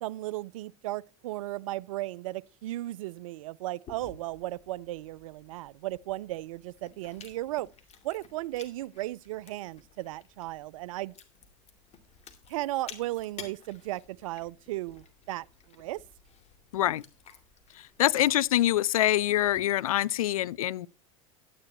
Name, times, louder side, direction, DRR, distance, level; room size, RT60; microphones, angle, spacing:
voice 1, 0.0-7.7 8.0-11.1 12.5-16.0, right 17 dB, 75° right, 0.4 m, -35 dB
Chewing mastication, 3.9-19.6, left 6 dB, 40° left, 2.3 m, -53 dB
voice 2, 16.7-17.0 18.0-20.9, left 13 dB, 85° left, 0.4 m, -25 dB
11.5 x 10.0 x 3.0 m
hypercardioid pair, 90°, 18 cm